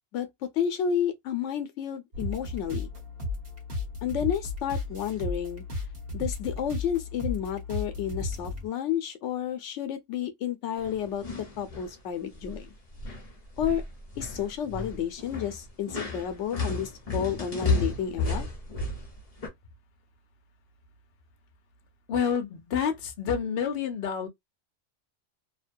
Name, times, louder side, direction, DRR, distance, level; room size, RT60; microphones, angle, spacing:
voice 1, 0.1-2.9 4.0-5.6 6.1-12.7 13.6-13.8 14.2-18.5, left 9 dB, 90° left, 1.0 m, -31 dB
sound 1, 2.1-8.7, left 2 dB, 55° right, 1.3 m, -35 dB
sound 2, 10.8-11.9 12.3-12.7 13.0-19.5, left 3 dB, 35° left, 1.0 m, -33 dB
voice 2, 22.1-24.3, left 7 dB, 60° left, 0.9 m, -28 dB
2.9 x 2.2 x 2.4 m
omnidirectional pair, 1.2 m